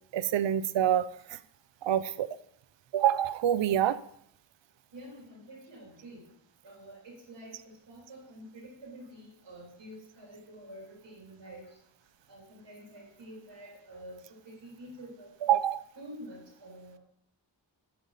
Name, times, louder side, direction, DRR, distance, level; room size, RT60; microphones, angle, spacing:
voice 1, 0.1-1.4 1.8-2.3 2.9-4.0 15.4-15.8, right 10 dB, 75° right, 15 dB, 0.5 m, -26 dB
voice 2, 4.9-6.2 6.6-7.6 7.9-11.7 12.3-14.2 14.4-15.3 15.9-17.0, right 1 dB, 90° right, -3 dB, 3.3 m, -48 dB
12.0 x 5.5 x 4.1 m, 0.71 s
wide cardioid pair, 60°, 45 cm